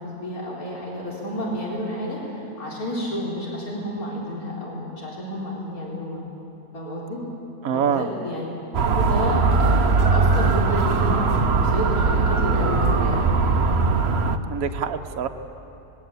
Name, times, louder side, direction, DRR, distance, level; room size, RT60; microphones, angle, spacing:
voice 1, 0.0-6.2 6.7-7.2 7.7-8.4 9.0-13.5, equal, 60° left, -4 dB, 4.8 m, -30 dB
voice 2, 7.6-8.1 14.5-15.3, right 7 dB, 65° right, 7 dB, 1.4 m, -25 dB
Motor vehicle (road) / Siren, 8.7-14.4, right 4 dB, 45° right, 1.1 m, -20 dB
25.5 x 21.0 x 8.5 m, 2.9 s
omnidirectional pair, 1.7 m